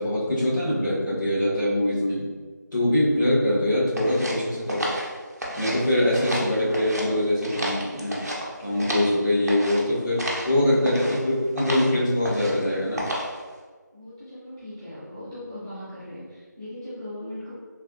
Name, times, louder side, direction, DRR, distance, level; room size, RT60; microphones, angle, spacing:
voice 1, 0.0-2.3 2.7-4.9 5.6-8.3 8.6-10.2 10.4-13.1, left 1 dB, 80° left, -8 dB, 1.3 m, -23 dB
sound 1, 3.9-5.8 6.1-7.1 7.4-9.1 9.5-9.8 10.2-10.5 10.8-11.2 11.6-11.9 12.2-12.6 13.0-13.4, equal, 55° right, 0.6 m, -31 dB
voice 2, 10.7-11.3 13.9-17.6, left 1 dB, 10° right, -17 dB, 0.7 m, -39 dB
3.2 x 2.4 x 2.4 m, 1.4 s
figure-of-eight pair, 175°, 10 cm